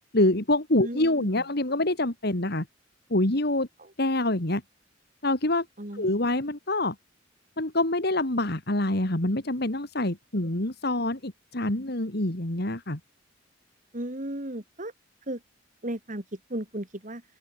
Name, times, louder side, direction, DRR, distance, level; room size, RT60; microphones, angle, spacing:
voice 1, 0.1-2.7 3.1-3.7 4.0-4.6 5.2-5.7 5.9-7.0 7.6-13.0, left 1 dB, 55° left, 2.9 m, -26 dB
voice 2, 0.8-1.3 3.8-3.9 5.8-6.2 13.9-14.9 15.3-15.4 15.8-17.2, right 1 dB, 40° right, 3.3 m, -35 dB
open air
head